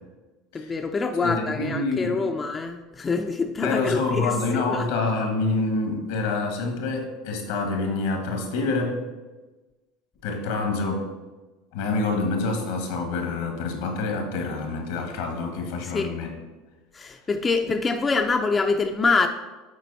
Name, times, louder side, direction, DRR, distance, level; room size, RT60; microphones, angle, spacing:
voice 1, 0.5-4.8 15.8-16.1 16.9-19.3, left 4 dB, 25° left, 5 dB, 0.5 m, -25 dB
voice 2, 1.2-2.2 3.6-9.0 10.2-11.0 11.7-16.3, left 3 dB, 80° left, 3 dB, 1.5 m, -27 dB
7.5 x 4.4 x 4.1 m, 1.2 s
hypercardioid pair, 90°, 0 cm